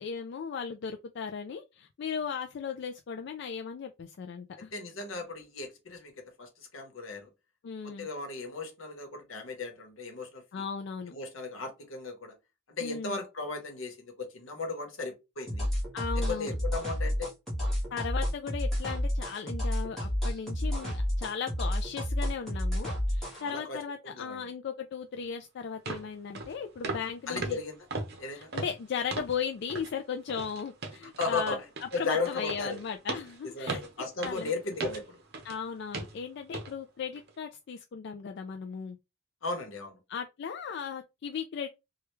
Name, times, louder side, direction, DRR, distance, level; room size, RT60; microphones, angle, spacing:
voice 1, 0.0-4.7 7.6-8.1 10.5-11.1 12.8-13.2 15.9-16.6 17.9-27.6 28.3-31.6 32.0-34.5 35.4-39.0 40.1-41.7, left 6 dB, 60° left, 0.3 m, -37 dB
voice 2, 4.7-7.3 7.8-10.6 11.1-12.4 12.7-15.7 16.1-17.3 23.2-23.8 24.0-24.5 27.3-27.9 28.2-28.5 31.2-31.6 31.9-32.8 33.4-35.2 39.4-40.0, left 3 dB, 80° left, 1.0 m, -36 dB
sound 1, 15.5-23.4, equal, ahead, 1.4 m, -30 dB
sound 2, 25.2-25.3 25.9-26.1 26.3-26.5 26.8-27.1 27.4-29.4 29.7-29.9 30.3-35.6 35.9-36.2 36.5-36.7 37.2-37.3, right 3 dB, 55° right, 0.7 m, -38 dB
3.2 x 2.3 x 3.0 m
head